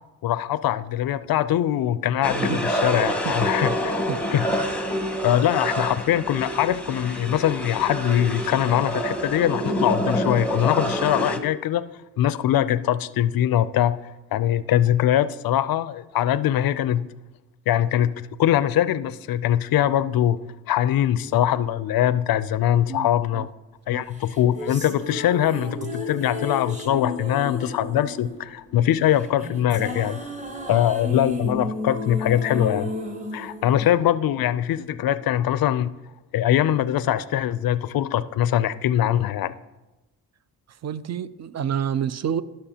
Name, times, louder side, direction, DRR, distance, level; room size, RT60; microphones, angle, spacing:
voice 1, 0.2-3.9 4.3-4.4 5.2-11.8 12.2-14.0 14.3-17.0 17.7-20.4 20.7-23.5 23.9-30.2 30.7-32.9 33.3-35.9 36.3-39.5, left 11 dB, 60° left, 15 dB, 0.5 m, -22 dB
sound 1, 2.2-11.4, equal, 5° left, 0.8 m, -27 dB
voice 2, 22.9-23.5 23.9-24.0 30.7-30.8 40.7-42.4, right 8 dB, 45° right, 15 dB, 0.4 m, -29 dB
sound 2, 24.2-34.6, left 2 dB, 20° right, 1.1 m, -33 dB
12.5 x 6.1 x 2.8 m, 1.1 s
cardioid pair, 65°, 40 cm